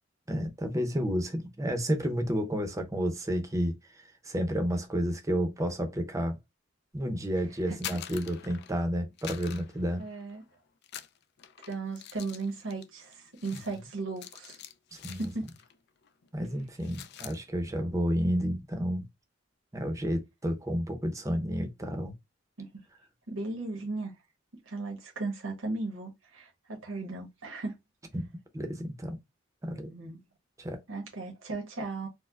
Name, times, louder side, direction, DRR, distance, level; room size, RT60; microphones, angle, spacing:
voice 1, 0.3-6.4 6.9-10.0 14.9-15.3 16.3-19.1 19.7-22.1 28.1-28.3 28.5-29.2 29.6-29.9 30.6-30.8, equal, 15° right, 0.6 m, -31 dB
voice 2, 7.3-7.8 10.0-10.4 11.6-14.6 15.1-15.5 22.6-22.7 23.3-24.1 24.7-27.8 29.7-30.2 30.9-32.1, right 3 dB, 80° right, 1.1 m, -36 dB
sound 1, 7.6-8.8 9.2-10.4 10.8-15.8 16.0-16.3 16.6-17.4, left 10 dB, 55° left, 0.4 m, -45 dB
4.3 x 2.1 x 2.3 m
head